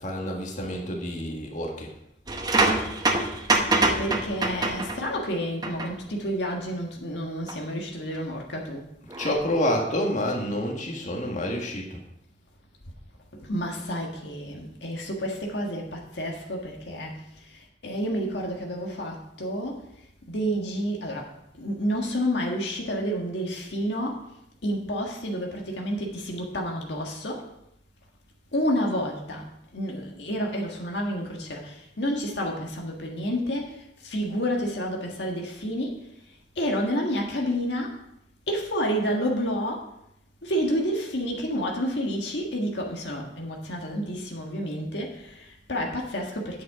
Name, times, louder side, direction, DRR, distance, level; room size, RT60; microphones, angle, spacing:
voice 1, 0.0-1.9 9.0-12.0, left 1 dB, 45° left, 0 dB, 1.8 m, -28 dB
sound 1, 2.3-5.2 5.6-5.9 7.5-7.6 9.1-9.3, right 2 dB, 25° right, 0.9 m, -25 dB
voice 2, 3.8-8.9 13.3-24.3 24.6-27.5 28.5-38.0 38.5-39.9 40.4-46.6, equal, 75° left, 0 dB, 1.7 m, -30 dB
9.5 x 7.8 x 4.9 m, 0.80 s
head